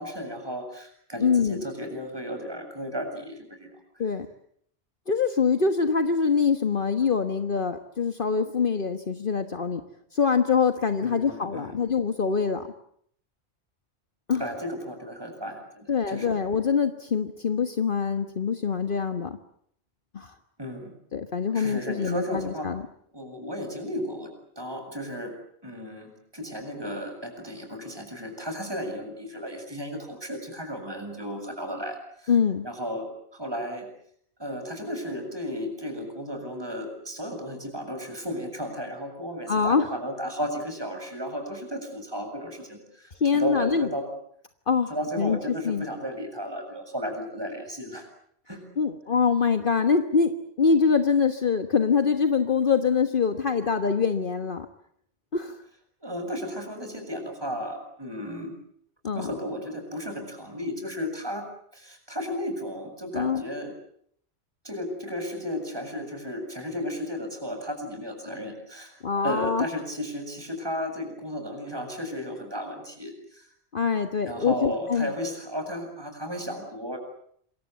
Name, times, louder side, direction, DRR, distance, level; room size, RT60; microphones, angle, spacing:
voice 1, 0.0-3.7 11.0-11.8 14.4-16.3 20.6-20.9 21.5-22.7 23.1-25.3 25.6-32.3 32.6-33.9 34.4-44.0 44.9-48.1 48.5-48.6 56.0-58.5 59.1-61.5 61.7-63.7 64.6-73.5 74.3-77.0, equal, 20° right, 5 dB, 7.5 m, -34 dB
voice 2, 1.2-1.6 4.0-4.3 5.1-9.8 10.1-12.7 14.3-14.4 15.9-19.4 20.1-20.3 21.1-22.8 32.3-32.6 39.5-39.9 43.1-43.9 44.7-44.9 45.2-45.4 45.6-45.9 48.8-50.3 50.6-54.7 55.3-55.6 59.0-59.3 63.1-63.4 69.0-69.7 73.7-75.1, left 5 dB, 55° left, 7 dB, 1.5 m, -24 dB
27.5 x 24.0 x 8.2 m, 0.67 s
omnidirectional pair, 1.1 m